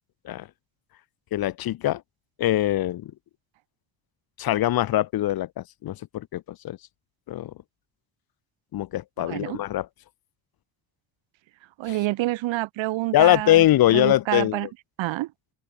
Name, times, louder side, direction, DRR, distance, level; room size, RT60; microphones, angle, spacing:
voice 1, 1.3-2.0 2.4-3.1 4.4-6.8 7.3-7.5 8.7-9.9 13.1-14.7, left 14 dB, 50° left, 1.7 m, -22 dB
voice 2, 9.2-9.6 11.8-13.6 13.9-14.7 15.0-15.3, right 17 dB, 80° right, 5.3 m, -27 dB
cardioid pair, 170°, 45 cm